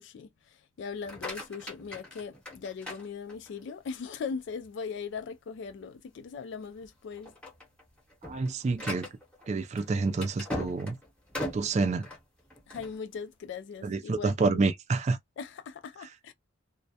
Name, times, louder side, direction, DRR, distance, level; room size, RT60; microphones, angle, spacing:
voice 1, 0.0-7.3 12.7-14.3 15.4-16.3, left 5 dB, 65° left, 0.3 m, -39 dB
sound 1, 0.9-3.7 4.2-4.7 5.1-5.2 5.7-5.8 6.5-6.8 7.1-13.0, left 1 dB, 5° left, 0.8 m, -40 dB
voice 2, 8.2-9.1 9.5-11.0 11.5-12.0 13.8-15.2, right 3 dB, 35° right, 0.3 m, -28 dB
2.2 x 2.0 x 2.7 m
head